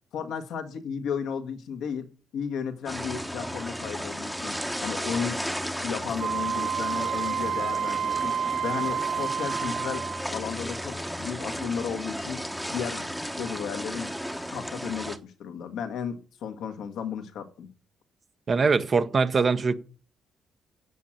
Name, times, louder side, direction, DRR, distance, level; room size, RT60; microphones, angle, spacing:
voice 1, 0.1-8.4 8.6-13.1 13.4-14.1 14.5-17.7, left 7 dB, 80° left, 1.7 m, -34 dB
sound 1, 2.9-15.2, equal, ahead, 1.1 m, -34 dB
Wind instrument woodwind instrument, 6.2-10.3, right 7 dB, 70° right, 0.9 m, -29 dB
voice 2, 18.5-19.7, right 4 dB, 40° right, 1.0 m, -22 dB
8.3 x 7.5 x 8.8 m
cardioid pair, 90°, 0 cm